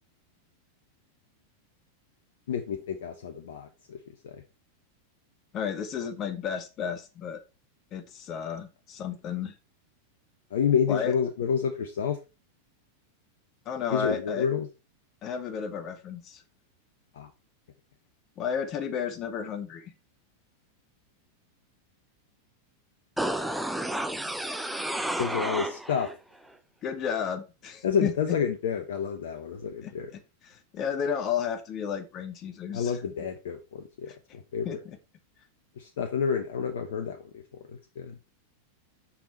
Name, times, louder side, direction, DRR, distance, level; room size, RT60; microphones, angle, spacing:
voice 1, 2.5-4.0 4.2-4.4 10.5-12.2 13.9-14.7 17.1-17.3 25.2-26.1 27.8-30.1 32.7-34.8 35.8-37.2 37.7-38.1, left 7 dB, 60° left, 7 dB, 0.9 m, -29 dB
voice 2, 5.5-7.4 7.9-9.5 10.9-11.1 13.6-14.5 15.2-16.4 18.4-19.9 26.8-28.4 29.8-33.0 34.1-34.2 34.6-35.0, left 7 dB, 35° left, 10 dB, 1.0 m, -33 dB
sound 1, 23.2-26.2 26.5-26.6, right 1 dB, ahead, 0.8 m, -31 dB
7.1 x 5.6 x 4.3 m, 0.30 s
figure-of-eight pair, 90°, 0 cm